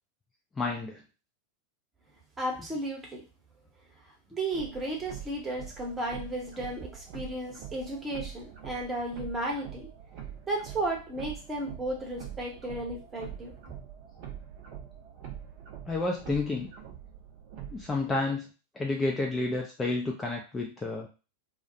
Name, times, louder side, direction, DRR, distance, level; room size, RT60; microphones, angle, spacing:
voice 1, 0.6-1.0 15.9-16.7 17.7-18.5 18.8-21.1, left 3 dB, 15° left, 0 dB, 0.3 m, -30 dB
voice 2, 2.4-3.2 4.3-9.9 10.5-13.5, right 1 dB, 15° right, 0 dB, 0.8 m, -34 dB
sound 1, 4.5-18.2, right 9 dB, 45° right, 0.5 m, -44 dB
2.2 x 2.0 x 2.6 m, 0.31 s
figure-of-eight pair, 90°, 0 cm